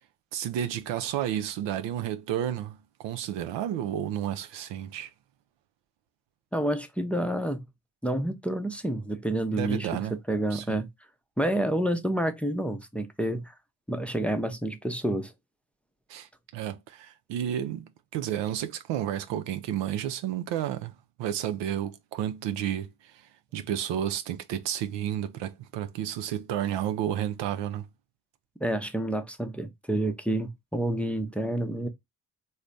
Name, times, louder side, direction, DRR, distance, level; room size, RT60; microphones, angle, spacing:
voice 1, 0.3-5.1 9.5-10.1 10.5-10.8 16.1-23.1 23.5-27.9, right 10 dB, 85° right, 0.5 m, -31 dB
voice 2, 6.5-7.6 8.0-10.9 11.4-13.5 13.9-15.3 28.6-31.9, right 1 dB, 5° left, 0.5 m, -29 dB
3.2 x 2.1 x 3.8 m
supercardioid pair, 60°, 42 cm